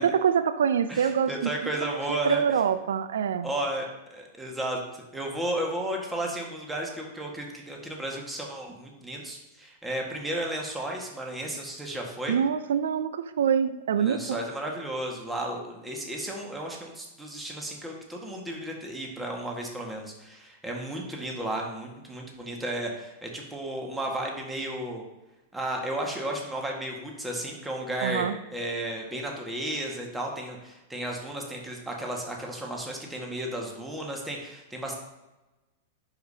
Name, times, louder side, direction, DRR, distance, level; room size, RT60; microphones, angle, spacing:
voice 1, 0.0-1.5 1.8-3.5 12.3-14.4 28.0-28.3, right 7 dB, 70° right, 13 dB, 0.4 m, -25 dB
voice 2, 0.9-2.4 3.4-12.4 14.0-25.0 25.5-34.9, right 1 dB, 10° right, 0 dB, 1.6 m, -33 dB
11.5 x 5.0 x 2.8 m, 1.0 s
figure-of-eight pair, 95°, 0 cm